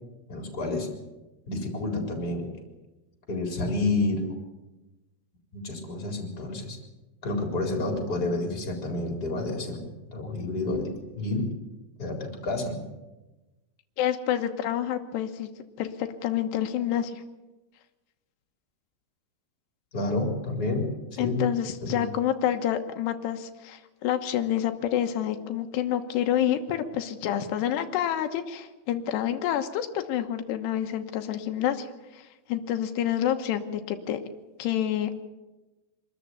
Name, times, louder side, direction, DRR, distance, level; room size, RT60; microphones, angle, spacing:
voice 1, 0.3-0.9 1.5-2.5 3.3-4.2 5.5-6.8 7.2-11.5 12.0-12.8 19.9-21.4 21.8-22.1, left 2 dB, 25° left, 3 dB, 4.4 m, -29 dB
voice 2, 14.0-15.5 15.8-17.2 21.2-31.9 32.1-34.2 34.6-35.1, left 10 dB, 90° left, 6 dB, 3.3 m, -28 dB
25.0 x 13.5 x 9.5 m, 1.1 s
omnidirectional pair, 4.7 m